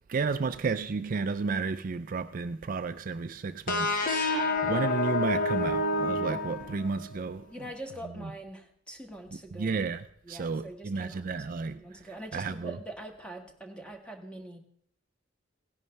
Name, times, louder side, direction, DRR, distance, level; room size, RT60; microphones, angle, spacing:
voice 1, 0.1-7.4 9.6-11.8 12.3-12.8, right 4 dB, 45° right, 0.4 m, -32 dB
sound 1, 3.7-7.2, left 2 dB, 45° left, 1.6 m, -28 dB
voice 2, 4.5-4.8 7.5-9.8 10.2-11.3 11.7-14.6, right 1 dB, 5° left, 1.7 m, -44 dB
17.0 x 11.0 x 3.3 m
head